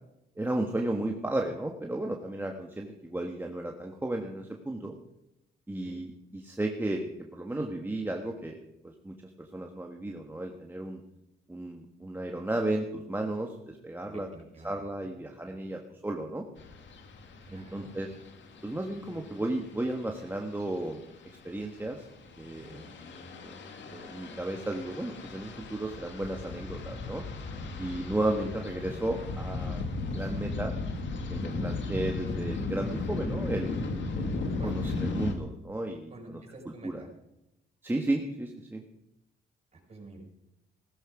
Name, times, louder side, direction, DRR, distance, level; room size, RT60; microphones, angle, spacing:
voice 1, 0.4-4.9 5.7-8.6 8.8-11.0 11.5-14.3 14.6-16.4 17.5-18.1 18.6-21.0 21.4-22.1 22.4-22.7 23.4-23.6 23.9-27.2 27.8-30.7 31.3-33.7 34.2-34.3 34.6-36.4 36.8-37.0 37.8-38.8, right 1 dB, 10° right, 1 dB, 1.5 m, -34 dB
voice 2, 14.0-15.1 15.4-15.7 17.4-17.9 19.0-19.2 22.6-22.9 34.6-34.8 36.1-37.1 39.7-40.2, right 2 dB, 30° right, 0 dB, 5.5 m, -48 dB
sound 1, 16.6-35.3, left 3 dB, 65° left, 2.2 m, -36 dB
16.0 x 13.5 x 5.0 m, 0.87 s
cardioid pair, 90°, 20 cm